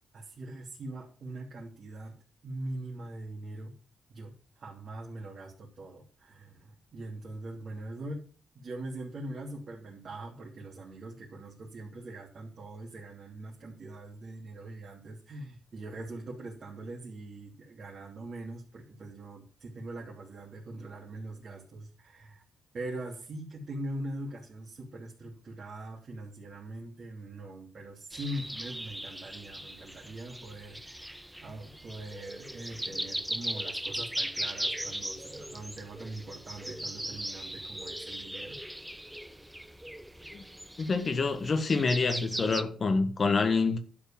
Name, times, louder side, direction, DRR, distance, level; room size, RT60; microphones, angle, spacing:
voice 1, 0.1-2.1 2.4-3.7 4.1-8.2 8.5-22.4 22.7-38.6, right 1 dB, 50° right, 3.0 m, -42 dB
sound 1, 28.1-42.6, right 1 dB, 5° right, 0.8 m, -38 dB
voice 2, 40.8-43.8, left 4 dB, 45° left, 1.4 m, -27 dB
11.5 x 5.0 x 7.3 m
cardioid pair, 85°, 0 cm